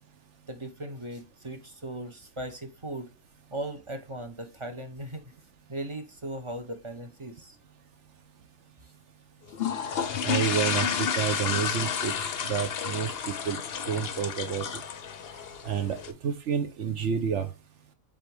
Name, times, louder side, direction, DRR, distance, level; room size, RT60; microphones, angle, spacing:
voice 1, 0.5-3.1 3.5-5.3 5.7-7.6, right 1 dB, 25° right, 0.8 m, -38 dB
sound 1, 9.5-16.1, left 7 dB, 55° left, 0.8 m, -31 dB
voice 2, 10.2-13.6 13.9-14.7 15.6-17.5, right 7 dB, 60° right, 1.1 m, -29 dB
7.7 x 3.7 x 3.4 m
omnidirectional pair, 1.5 m